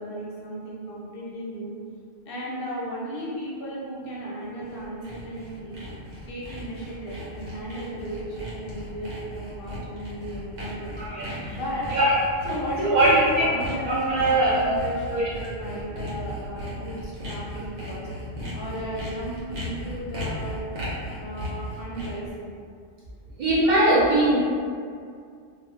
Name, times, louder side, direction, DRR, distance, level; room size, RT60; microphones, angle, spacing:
voice 1, 0.0-1.7 2.3-5.8 6.3-11.2 11.5-11.9 12.5-18.1 18.5-20.6 21.2-22.5, equal, 60° left, -5 dB, 0.7 m, -34 dB
Sawing, 4.5-22.3, equal, 85° right, 1.1 m, -36 dB
voice 2, 11.0-11.6 11.9-12.2 12.8-13.1 13.4-13.5 13.8-14.8 15.1-15.3 17.6-17.7 23.4-24.4, right 1 dB, 60° right, -8 dB, 0.4 m, -21 dB
2.4 x 2.3 x 3.0 m, 2.2 s
omnidirectional pair, 1.3 m